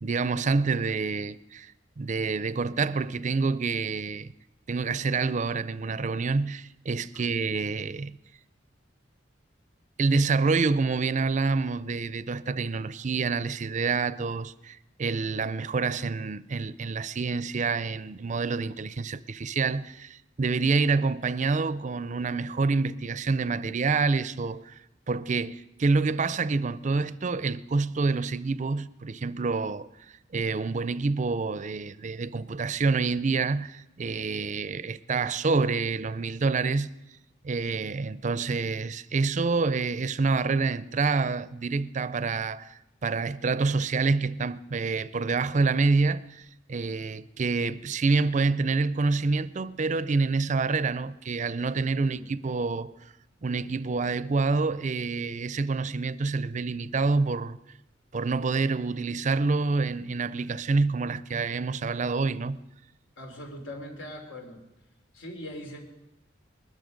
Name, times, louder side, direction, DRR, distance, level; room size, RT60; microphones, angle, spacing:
voice 1, 0.0-4.3 4.7-8.2 10.0-24.7 25.1-29.9 30.3-36.9 37.4-52.9 53.4-57.6 58.1-62.6, right 4 dB, 40° right, 0.5 m, -27 dB
voice 2, 63.2-64.6 65.1-65.8, left 1 dB, 85° left, 3.1 m, -41 dB
21.0 x 13.0 x 5.2 m
head